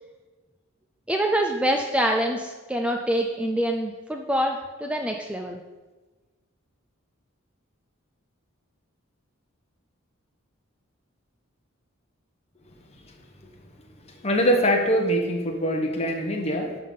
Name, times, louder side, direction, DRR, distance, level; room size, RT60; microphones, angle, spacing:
voice 1, 1.1-5.6, right 1 dB, 5° right, 2 dB, 0.4 m, -25 dB
voice 2, 14.1-16.8, equal, 30° left, 2 dB, 1.1 m, -24 dB
11.5 x 3.9 x 5.5 m, 1.3 s
head